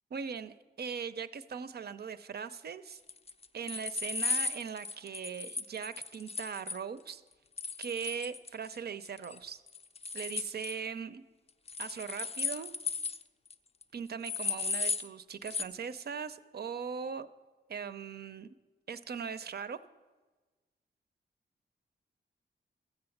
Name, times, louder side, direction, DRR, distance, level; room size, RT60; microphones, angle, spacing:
voice 1, 0.1-3.0 3.5-7.2 7.8-9.6 10.1-11.2 11.8-12.7 13.9-17.3 17.7-18.6 18.9-19.8, right 6 dB, 60° right, 12 dB, 0.5 m, -40 dB
sound 1, 3.1-6.8 7.6-8.7 9.0-9.4 9.7-10.8 11.7-13.2 13.5-13.6 13.8-13.9 14.2-15.1 15.5-15.6, left 4 dB, 35° left, 0.4 m, -35 dB
13.0 x 7.8 x 7.1 m, 1.3 s
wide cardioid pair, 135°, 19 cm